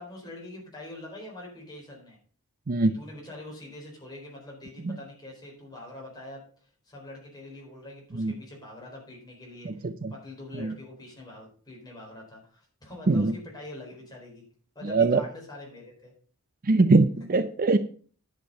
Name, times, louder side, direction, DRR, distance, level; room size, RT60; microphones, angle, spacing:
voice 1, 0.0-2.2 2.9-6.5 6.8-14.4 14.7-16.1, left 2 dB, 20° left, -2 dB, 4.3 m, -44 dB
voice 2, 2.7-3.0 4.8-5.0 8.2-8.3 9.7-10.1 10.5-10.7 13.1-13.3 14.9-15.2 16.6-17.8, right 3 dB, 40° right, 11 dB, 0.5 m, -22 dB
10.5 x 6.7 x 5.3 m, 0.43 s
head